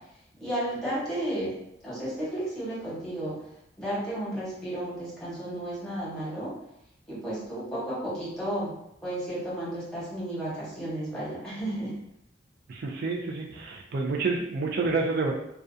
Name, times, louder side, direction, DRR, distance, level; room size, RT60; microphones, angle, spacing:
voice 1, 0.4-1.5 1.8-3.4 3.8-6.5 7.1-8.7 9.0-11.9, right 1 dB, 5° left, -9 dB, 1.0 m, -33 dB
voice 2, 12.7-15.3, right 3 dB, 60° right, -1 dB, 0.3 m, -28 dB
2.4 x 2.1 x 2.6 m, 0.79 s
head